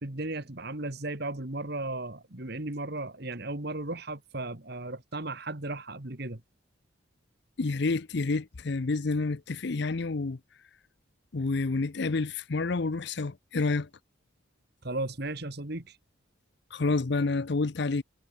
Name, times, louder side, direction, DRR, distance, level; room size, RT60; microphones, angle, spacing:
voice 1, 0.0-6.4 14.8-15.9, right 2 dB, 50° right, 1.9 m, -35 dB
voice 2, 7.6-10.4 11.3-13.9 16.7-18.0, left 3 dB, 55° left, 0.6 m, -29 dB
head